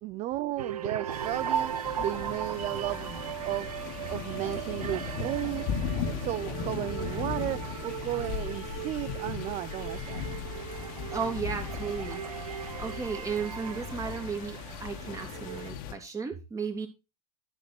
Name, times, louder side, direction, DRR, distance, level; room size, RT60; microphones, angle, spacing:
voice 1, 0.0-1.7 2.0-3.7 4.1-5.7 6.0-10.2, right 14 dB, 35° right, 0.5 m, -34 dB
sound 1, 0.6-15.7, right 10 dB, 90° right, 0.7 m, -38 dB
sound 2, 1.1-15.9, left 6 dB, 50° left, 2.0 m, -37 dB
voice 2, 11.1-12.2 12.8-16.9, right 5 dB, 15° right, 2.8 m, -34 dB
12.5 x 5.9 x 4.4 m
hypercardioid pair, 115°, 19 cm